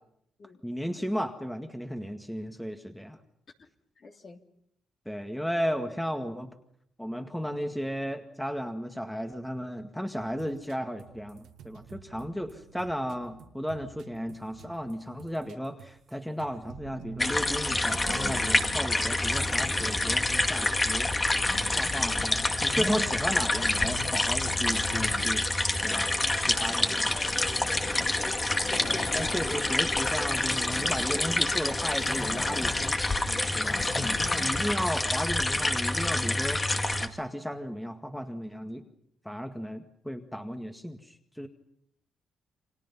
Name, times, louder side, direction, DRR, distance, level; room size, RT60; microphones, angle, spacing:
voice 1, 0.6-3.2 5.1-6.5 7.0-21.1 21.8-26.1 26.5-27.1 28.9-38.9 39.3-41.5, equal, ahead, 6 dB, 1.9 m, -34 dB
voice 2, 4.0-4.4 22.0-22.3 27.6-28.4, left 4 dB, 40° left, 4 dB, 3.1 m, -50 dB
sound 1, 10.2-16.1 16.4-19.2, right 8 dB, 80° right, 2.0 m, -50 dB
sound 2, 17.2-37.1, left 2 dB, 20° left, 2.0 m, -27 dB
sound 3, 17.7-20.1 21.2-23.1 23.5-25.5 26.9-34.8, left 3 dB, 90° left, 7.4 m, -42 dB
29.5 x 25.5 x 5.6 m, 0.72 s
cardioid pair, 90°, 0 cm